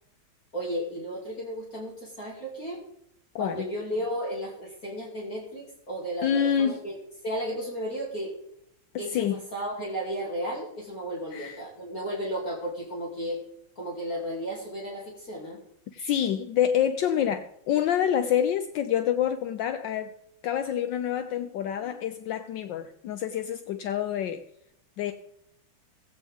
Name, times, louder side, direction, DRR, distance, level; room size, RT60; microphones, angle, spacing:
voice 1, 0.5-2.8 3.4-7.0 7.2-8.4 9.0-13.4 13.8-15.6, equal, 45° left, 3.0 m, -34 dB
voice 2, 3.3-3.7 6.2-6.8 9.1-9.4 11.3-11.6 15.9-20.1 20.4-24.4 25.0-25.1, left 9 dB, 75° left, 1.3 m, -27 dB
18.0 x 8.4 x 3.5 m
omnidirectional pair, 2.1 m